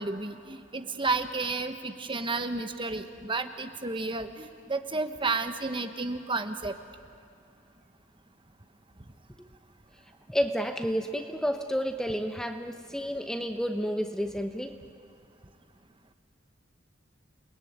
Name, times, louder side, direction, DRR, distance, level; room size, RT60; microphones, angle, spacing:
voice 1, 0.0-6.7, right 3 dB, 25° right, 8 dB, 1.1 m, -32 dB
voice 2, 10.3-14.7, equal, 5° left, 6 dB, 0.9 m, -30 dB
29.0 x 20.5 x 9.4 m, 2.3 s
head